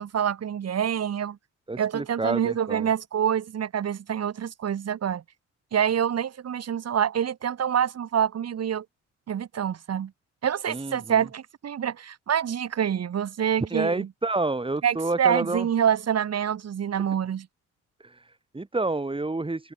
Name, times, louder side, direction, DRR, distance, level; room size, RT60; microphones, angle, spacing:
voice 1, 0.0-1.4 1.8-5.2 5.7-8.9 9.3-10.1 10.4-14.1 14.8-17.5, right 9 dB, 55° right, 3.6 m, -26 dB
voice 2, 1.7-2.9 10.7-11.3 13.7-15.7 16.9-17.0 18.0-19.7, right 2 dB, 15° right, 6.9 m, -29 dB
cardioid pair, 90°, 30 cm